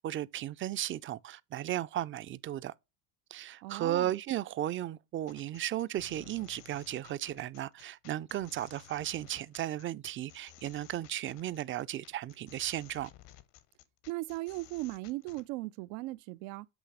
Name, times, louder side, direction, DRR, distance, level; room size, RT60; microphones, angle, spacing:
voice 1, 0.0-2.7 3.3-13.1, right 13 dB, 30° right, 0.4 m, -35 dB
voice 2, 3.6-4.1 14.1-16.7, right 20 dB, 85° right, 0.6 m, -38 dB
sound 1, 5.3-15.5, left 14 dB, 80° left, 1.0 m, -56 dB
8.1 x 3.1 x 4.8 m
cardioid pair, 110°, 42 cm